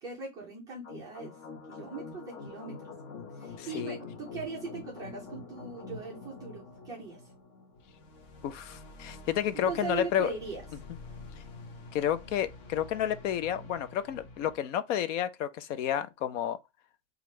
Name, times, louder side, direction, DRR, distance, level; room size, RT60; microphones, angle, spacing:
voice 1, 0.0-1.3 1.7-2.9 3.3-7.2 9.5-10.6, right 4 dB, 10° right, 0.3 m, -40 dB
sound 1, 0.8-14.6, left 3 dB, 40° left, 0.9 m, -46 dB
voice 2, 3.6-4.0 8.4-10.3 11.9-16.6, left 10 dB, 65° left, 0.6 m, -31 dB
5.0 x 2.4 x 3.1 m
supercardioid pair, 175°, 41 cm